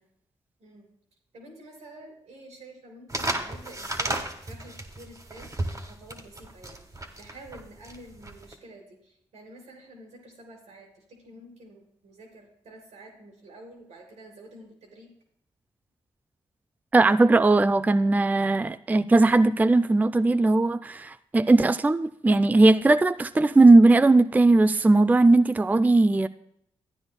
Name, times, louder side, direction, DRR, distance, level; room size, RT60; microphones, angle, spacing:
voice 1, 1.3-5.5 5.7-15.1, right 1 dB, 85° right, 2.7 m, -49 dB
sound 1, 3.1-8.5, right 1 dB, 30° right, 1.4 m, -33 dB
voice 2, 16.9-26.3, right 2 dB, 15° right, 0.3 m, -19 dB
12.5 x 9.4 x 2.2 m
supercardioid pair, 45°, 11 cm